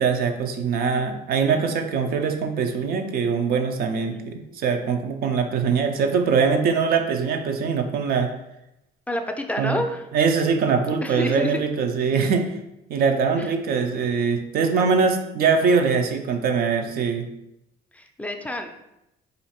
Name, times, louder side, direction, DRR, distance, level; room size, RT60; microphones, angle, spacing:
voice 1, 0.0-8.3 9.6-9.8 10.1-12.5 12.9-17.2, right 5 dB, 65° right, 5 dB, 0.6 m, -22 dB
voice 2, 9.1-10.1 11.0-11.6 13.4-13.5 17.9-18.7, left 1 dB, 10° left, 4 dB, 0.4 m, -28 dB
4.0 x 2.7 x 4.3 m, 0.88 s
cardioid pair, 110°, 17 cm